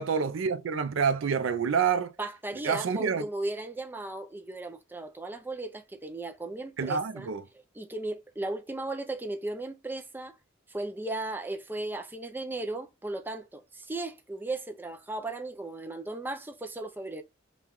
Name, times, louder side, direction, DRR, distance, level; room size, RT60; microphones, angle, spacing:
voice 1, 0.0-2.1 2.6-3.3 6.8-7.4, right 6 dB, 75° right, 0.4 m, -27 dB
voice 2, 2.2-7.3 7.7-10.3 10.7-17.2, right 2 dB, 10° right, 0.4 m, -36 dB
5.5 x 2.3 x 3.0 m
head